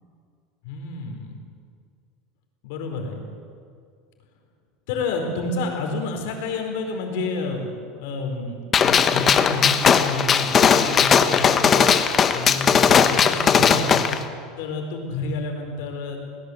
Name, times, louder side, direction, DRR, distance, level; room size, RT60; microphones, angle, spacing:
voice 1, 0.6-1.4 2.6-3.3 4.9-7.7 8.0-12.0 12.3-14.2 14.6-16.2, left 3 dB, 65° left, 3 dB, 4.4 m, -29 dB
Gunshot gunfire, 8.7-14.2, left 7 dB, 20° left, 0.8 m, -18 dB
22.5 x 18.5 x 8.0 m, 2.2 s
supercardioid pair, 170°, 0 cm